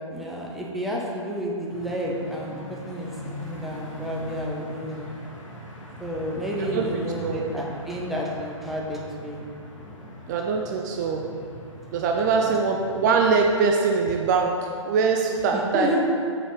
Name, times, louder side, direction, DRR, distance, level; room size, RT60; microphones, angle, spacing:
voice 1, 0.1-3.1 3.4-5.1 6.0-9.5 9.8-10.0 12.4-12.5 15.5-16.0, equal, ahead, -3 dB, 0.7 m, -31 dB
sound 1, 1.7-13.5, equal, 85° left, 1.5 m, -40 dB
voice 2, 10.3-11.3 11.9-15.9, right 5 dB, 35° right, 2 dB, 0.5 m, -22 dB
6.8 x 4.3 x 5.0 m, 2.3 s
figure-of-eight pair, 125°, 16 cm